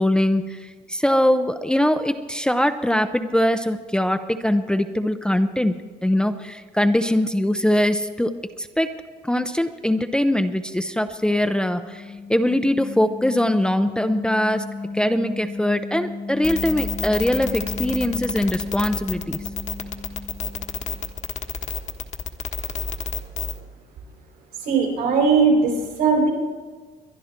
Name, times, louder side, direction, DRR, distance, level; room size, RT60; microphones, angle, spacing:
voice 1, 0.0-9.0 9.2-12.0 12.3-14.7 14.9-19.4, left 1 dB, 5° left, 8 dB, 0.6 m, -22 dB
sound 1, 10.9-21.1, left 3 dB, 75° left, 2.3 m, -35 dB
sound 2, 16.4-23.6, left 5 dB, 45° left, 1.4 m, -29 dB
voice 2, 24.6-26.3, right 4 dB, 80° right, 0 dB, 4.9 m, -19 dB
23.0 x 11.0 x 4.4 m, 1.5 s
cardioid pair, 110°, 17 cm